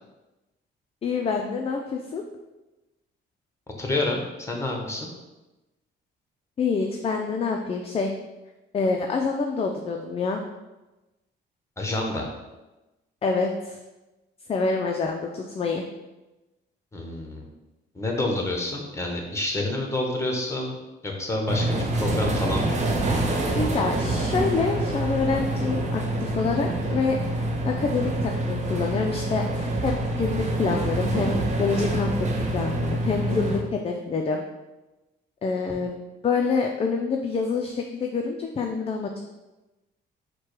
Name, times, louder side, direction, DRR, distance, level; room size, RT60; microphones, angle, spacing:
voice 1, 1.0-2.2 6.6-8.1 8.7-10.4 13.2-13.8 14.5-15.8 23.5-34.4 35.4-35.9 36.2-39.2, left 4 dB, 30° left, 2 dB, 0.4 m, -27 dB
voice 2, 3.8-5.1 11.8-12.3 16.9-17.4 17.9-20.8 21.0-22.8, left 2 dB, 15° left, 1 dB, 1.0 m, -28 dB
sound 1, 21.5-33.6, right 2 dB, 35° right, 0.7 m, -26 dB
4.5 x 2.2 x 4.7 m, 1.1 s
cardioid pair, 90°, 20 cm